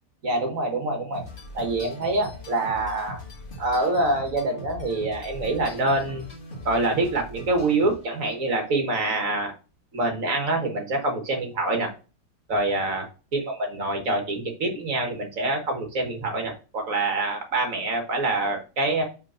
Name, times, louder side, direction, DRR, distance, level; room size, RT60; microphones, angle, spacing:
voice 1, 0.2-1.2 1.5-3.2 3.6-6.3 6.7-9.5 9.9-11.9 12.5-13.1 13.3-19.0, right 2 dB, 50° right, 4 dB, 1.7 m, -25 dB
sound 1, 1.1-8.3, left 1 dB, 30° left, 1.5 m, -41 dB
5.3 x 3.9 x 5.6 m, 0.34 s
omnidirectional pair, 1.8 m